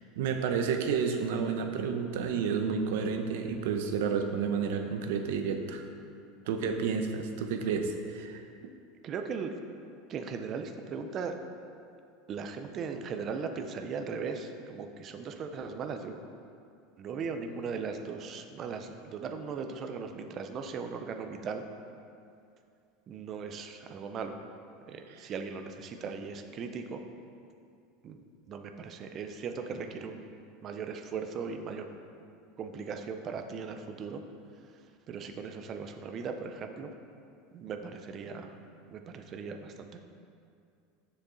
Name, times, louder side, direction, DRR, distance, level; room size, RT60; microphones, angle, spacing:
voice 1, 0.2-5.8 6.5-8.7 25.1-25.3, right 6 dB, 70° right, 6 dB, 0.7 m, -31 dB
voice 2, 9.0-9.5 10.1-11.4 12.3-16.2 17.0-21.6 23.1-24.4 24.9-27.0 28.0-28.2 28.5-30.2 30.6-31.9 32.6-34.2 35.1-36.9 37.5-38.5 38.9-40.0, right 5 dB, 25° right, 6 dB, 0.4 m, -38 dB
7.0 x 6.8 x 3.9 m, 2.4 s
supercardioid pair, 175°, 0 cm